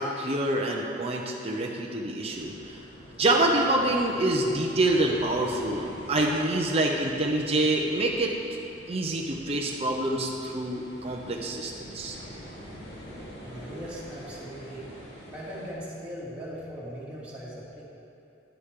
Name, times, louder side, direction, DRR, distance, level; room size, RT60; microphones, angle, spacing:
voice 1, 0.0-2.8 3.2-8.4 8.9-12.2, right 1 dB, 35° right, -1 dB, 0.8 m, -26 dB
sound 1, 2.3-15.7, equal, 65° left, 2.1 m, -45 dB
voice 2, 13.4-14.9 15.3-17.9, equal, 5° right, -9 dB, 2.6 m, -39 dB
11.0 x 10.5 x 3.7 m, 2.6 s
head